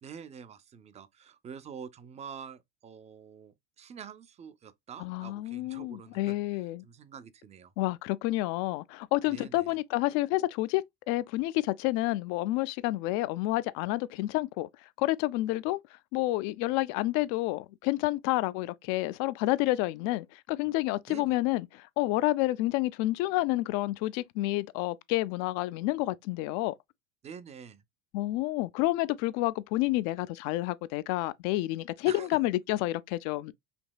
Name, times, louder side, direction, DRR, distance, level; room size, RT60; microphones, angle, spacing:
voice 1, 0.0-6.3 6.8-7.7 9.3-9.8 21.1-21.3 27.2-27.8 32.1-32.3, right 7 dB, 20° right, 0.4 m, -46 dB
voice 2, 5.0-6.8 7.8-14.7 15.0-15.8 16.1-26.8 28.1-33.5, left 18 dB, 60° left, 0.5 m, -29 dB
5.2 x 2.8 x 2.2 m
supercardioid pair, 110°, 33 cm